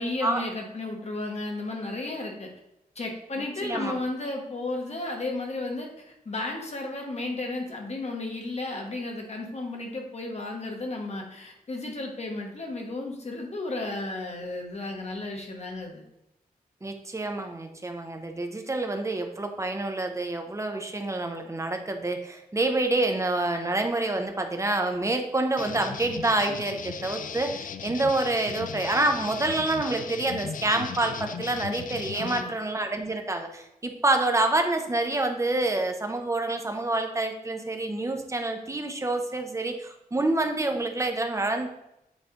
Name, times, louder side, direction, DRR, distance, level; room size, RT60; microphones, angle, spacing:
voice 1, 0.0-2.5 2.9-16.0 32.1-32.5, left 2 dB, 45° left, 1 dB, 1.2 m, -33 dB
voice 2, 3.6-4.0 16.8-41.7, right 2 dB, 20° right, 5 dB, 0.8 m, -27 dB
sound 1, 25.6-32.4, left 7 dB, 60° left, 0.4 m, -37 dB
8.3 x 3.3 x 3.8 m, 0.84 s
wide cardioid pair, 105°, 15 cm